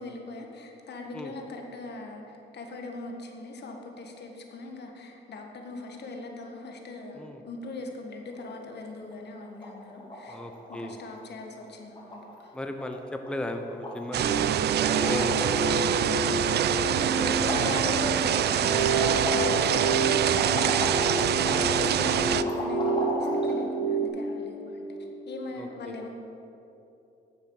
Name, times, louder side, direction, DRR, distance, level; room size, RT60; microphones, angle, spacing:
voice 1, 0.0-10.4 10.7-12.5 16.9-25.0 25.3-26.1, left 2 dB, 60° left, 2 dB, 1.5 m, -40 dB
sound 1, 8.3-8.8 9.1-9.2 9.4-9.7 10.0-10.8 11.0-11.3 11.6-11.7 11.9-12.5 12.8-12.9 13.2-13.6 13.8-15.8 16.1-16.9 17.2-23.5, left 1 dB, 25° left, 2.6 m, -36 dB
voice 2, 10.3-11.0 12.5-14.6 15.0-16.0 17.2-17.9 19.6-19.8 25.6-26.0, left 1 dB, 5° left, 5 dB, 0.7 m, -36 dB
sound 2, 14.1-22.4, right 10 dB, 55° right, 0.4 m, -25 dB
sound 3, 14.2-24.1, right 3 dB, 80° right, 2.6 m, -29 dB
9.9 x 7.2 x 6.3 m, 3.0 s
cardioid pair, 90°, 20 cm